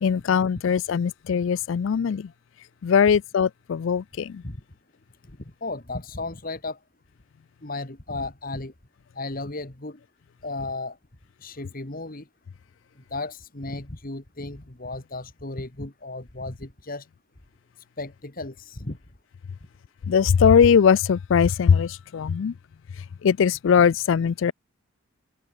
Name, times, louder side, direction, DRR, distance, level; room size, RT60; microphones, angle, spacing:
voice 1, 0.0-2.3 2.8-4.4 20.1-22.5 23.2-24.5, left 7 dB, 60° left, 0.3 m, -20 dB
voice 2, 5.3-6.8 7.6-8.7 9.2-10.0 10.4-11.0 11.4-12.3 13.0-17.1 18.0-19.0, left 2 dB, 40° left, 1.8 m, -34 dB
head